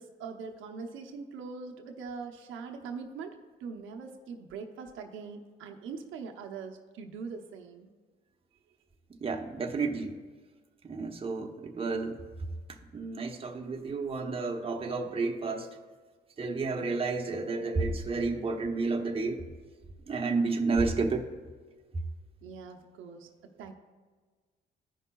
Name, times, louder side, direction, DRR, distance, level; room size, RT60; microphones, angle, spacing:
voice 1, 0.0-7.9 8.7-8.8 22.4-23.7, right 5 dB, 85° right, 3 dB, 0.8 m, -42 dB
voice 2, 9.2-10.2 10.9-12.2 12.9-15.7 16.4-19.4 20.1-21.2, right 3 dB, 30° right, 2 dB, 0.9 m, -31 dB
15.0 x 5.5 x 2.3 m, 1.4 s
cardioid pair, 90°, 20 cm